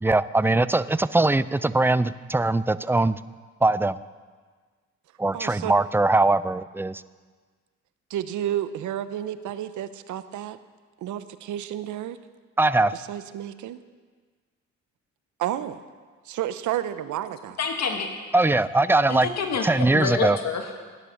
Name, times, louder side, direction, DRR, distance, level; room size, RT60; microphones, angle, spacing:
voice 1, 0.0-3.2 3.6-4.0 5.2-7.0 12.6-12.9 18.3-19.3 19.6-20.4, right 2 dB, 10° right, 16 dB, 0.4 m, -21 dB
voice 2, 5.3-5.7 8.1-10.6 11.0-12.2 12.9-13.8 15.4-15.8 16.3-17.6, right 11 dB, 75° right, 13 dB, 0.8 m, -31 dB
voice 3, 17.6-18.1 19.1-20.8, left 5 dB, 60° left, 3 dB, 1.9 m, -28 dB
17.0 x 9.8 x 6.4 m, 1.5 s
cardioid pair, 90°, 30 cm